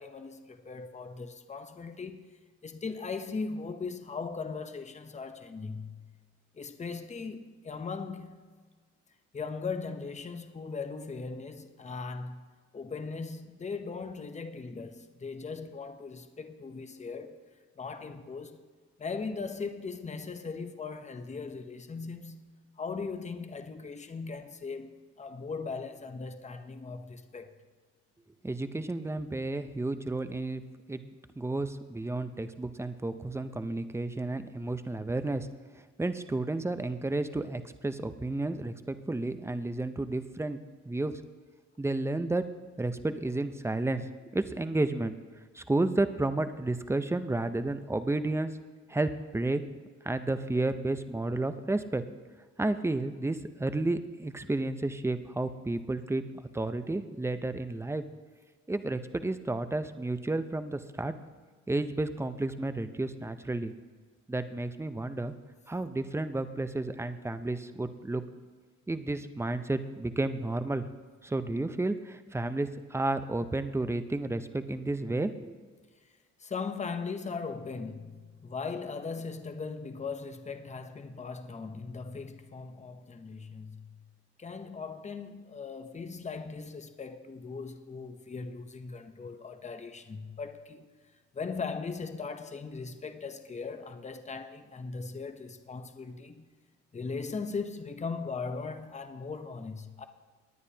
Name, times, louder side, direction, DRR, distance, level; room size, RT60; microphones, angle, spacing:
voice 1, 0.0-2.3 2.6-6.1 6.5-8.5 9.3-17.4 17.8-18.7 19.0-27.6 76.4-84.0 84.4-90.9 91.3-96.5 96.9-100.1, left 4 dB, 25° left, 0.8 m, -39 dB
voice 2, 28.4-30.6 30.9-35.5 36.0-40.6 40.9-41.2 41.8-42.4 42.8-45.1 45.5-48.5 48.9-49.6 50.0-52.0 52.6-56.2 56.5-58.0 58.7-61.1 61.7-63.7 64.3-65.3 65.7-68.2 68.9-70.8 71.2-75.6, right 2 dB, 10° right, 0.6 m, -31 dB
19.0 x 9.7 x 2.8 m
cardioid pair, 90°, 30 cm